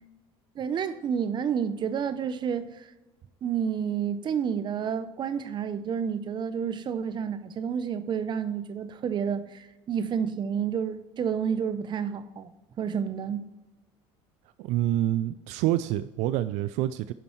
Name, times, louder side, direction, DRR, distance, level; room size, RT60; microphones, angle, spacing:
voice 1, 0.6-2.9 3.4-12.5 12.8-13.5, right 7 dB, 40° right, 0.7 m, -30 dB
voice 2, 14.6-17.1, right 13 dB, 70° right, 0.4 m, -27 dB
11.0 x 5.4 x 4.5 m
supercardioid pair, 110°, 12 cm